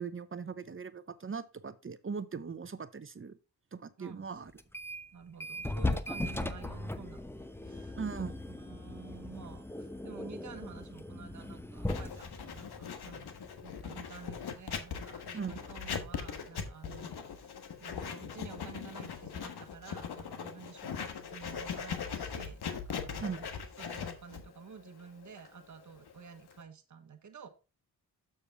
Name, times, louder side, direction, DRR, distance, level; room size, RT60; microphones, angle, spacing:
voice 1, 0.0-3.4 3.7-4.5 8.0-8.6 15.3-15.6 23.2-23.4, right 5 dB, 30° right, 0.8 m, -39 dB
voice 2, 4.0-4.4 5.1-17.5 17.8-23.5 23.8-27.5, right 6 dB, 45° right, 1.2 m, -51 dB
sound 1, 4.6-5.1 5.4-13.9, left 2 dB, 5° left, 0.9 m, -38 dB
Writing, 11.9-26.6, left 7 dB, 75° left, 1.3 m, -40 dB
7.0 x 6.7 x 3.5 m
cardioid pair, 50°, 39 cm